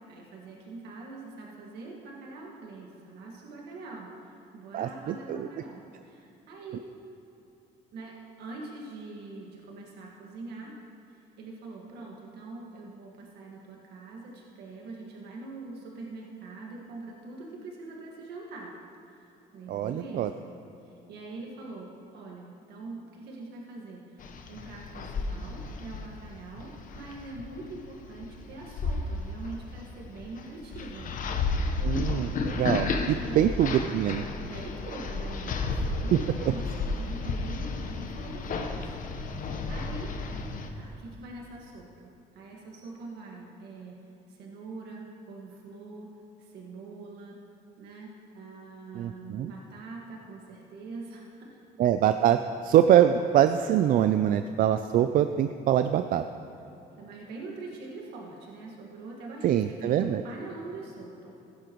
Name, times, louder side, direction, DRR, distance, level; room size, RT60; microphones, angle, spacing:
voice 1, 0.1-6.9 7.9-10.7 11.1-18.7 19.1-20.5 20.8-31.1 31.9-32.2 33.2-33.4 34.4-38.8 39.2-40.1 40.8-42.1 42.3-44.0 44.3-46.1 46.4-47.4 47.8-51.6 56.9-61.4, right 3 dB, 75° right, -2 dB, 1.7 m, -43 dB
voice 2, 4.7-5.5 19.7-20.3 31.8-34.2 48.9-49.5 51.8-56.2 59.4-60.2, right 10 dB, 55° right, 9 dB, 0.4 m, -24 dB
sound 1, 24.2-40.7, left 3 dB, 55° left, 1.0 m, -33 dB
15.5 x 11.0 x 3.0 m, 3.0 s
cardioid pair, 110°, 17 cm